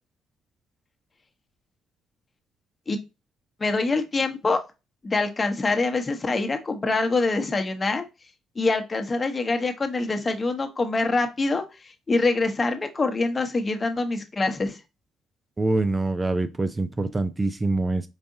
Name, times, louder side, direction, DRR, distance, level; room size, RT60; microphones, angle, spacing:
voice 1, 3.6-4.6 5.0-8.0 8.6-14.8, left 3 dB, 30° left, 6 dB, 0.9 m, -25 dB
voice 2, 15.6-18.0, right 2 dB, 25° right, 10 dB, 0.4 m, -25 dB
4.7 x 2.6 x 2.6 m, 0.26 s
supercardioid pair, 60°, 0 cm